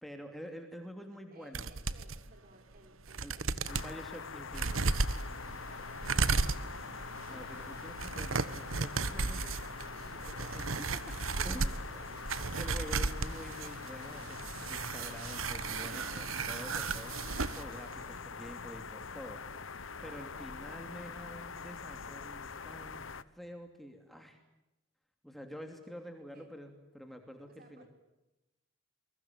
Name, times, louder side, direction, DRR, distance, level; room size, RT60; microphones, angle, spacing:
voice 1, 0.0-1.7 3.2-3.3 3.7-4.8 7.3-9.4 10.0-11.2 11.4-12.0 12.6-19.8 20.0-23.0 23.3-24.4 25.2-27.8, equal, ahead, 4 dB, 2.8 m, -48 dB
voice 2, 1.3-3.4 5.7-6.9 9.1-10.4 11.7-12.3 26.3-26.5 27.4-27.9, right 1 dB, 45° right, 6 dB, 5.7 m, -59 dB
sound 1, 1.5-2.2 2.7-2.8 3.1-3.9 4.5-17.6 17.9-18.0, right 4 dB, 85° right, 1.3 m, -35 dB
sound 2, 3.7-23.2, left 5 dB, 75° left, 1.1 m, -44 dB
28.5 x 22.5 x 9.2 m, 0.97 s
head